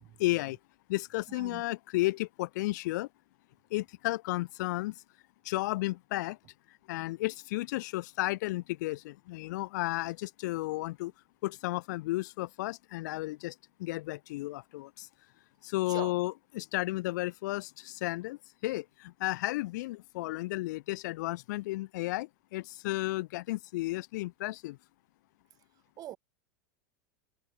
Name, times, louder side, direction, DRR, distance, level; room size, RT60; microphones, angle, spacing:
voice 1, 0.2-0.6 0.9-3.1 3.7-4.9 5.4-6.4 6.9-11.1 11.4-15.1 15.6-24.8, left 19 dB, 70° left, 1.2 m, -33 dB
voice 2, 1.4-1.6 15.9-16.1 26.0-26.2, right 13 dB, 40° right, 3.3 m, -41 dB
supercardioid pair, 115°, 10 cm